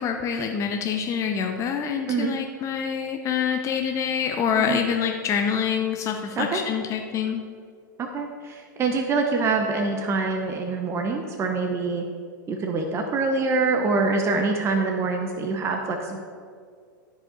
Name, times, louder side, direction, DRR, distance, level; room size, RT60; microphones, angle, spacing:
voice 1, 0.0-7.4, left 7 dB, 30° left, 4 dB, 0.6 m, -26 dB
voice 2, 8.0-12.1 12.5-16.2, right 4 dB, 25° right, 3 dB, 0.8 m, -25 dB
12.5 x 5.0 x 3.9 m, 2.1 s
hypercardioid pair, 105°, 10 cm